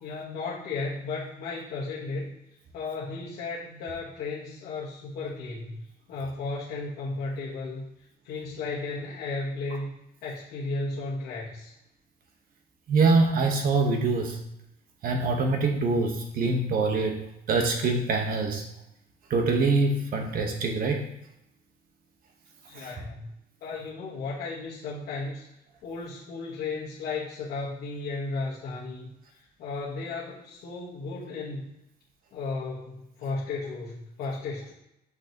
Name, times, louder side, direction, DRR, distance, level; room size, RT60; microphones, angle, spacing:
voice 1, 0.0-2.3 2.7-5.8 6.1-7.9 8.2-9.9 10.2-11.7 22.7-23.3 23.6-25.4 25.8-29.1 29.6-31.6 32.3-34.7, left 3 dB, 75° left, -6 dB, 1.5 m, -34 dB
voice 2, 12.9-14.4 15.0-17.2 17.5-18.6 19.3-21.1, right 3 dB, 60° right, 3 dB, 1.3 m, -24 dB
6.2 x 5.9 x 3.0 m, 0.83 s
cardioid pair, 110°, 17 cm